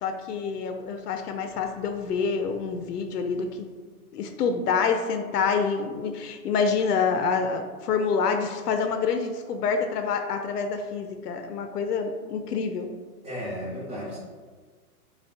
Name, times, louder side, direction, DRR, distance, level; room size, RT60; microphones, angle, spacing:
voice 1, 0.0-3.7 4.1-12.9, left 5 dB, 90° left, 6 dB, 0.5 m, -27 dB
voice 2, 13.2-14.2, equal, 25° right, -8 dB, 1.1 m, -34 dB
5.5 x 2.3 x 2.6 m, 1.5 s
hypercardioid pair, 175°, 46 cm